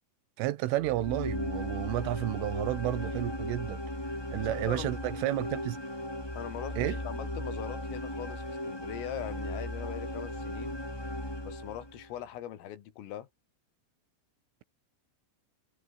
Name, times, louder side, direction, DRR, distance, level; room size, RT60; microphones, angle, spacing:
voice 1, 0.4-3.8 4.3-5.8 6.8-7.0, right 16 dB, 80° right, 3.6 m, -31 dB
sound 1, 0.8-12.1, left 1 dB, 5° left, 3.4 m, -37 dB
voice 2, 4.2-4.9 6.4-10.8 11.5-13.3, left 11 dB, 85° left, 5.0 m, -41 dB
omnidirectional pair, 5.7 m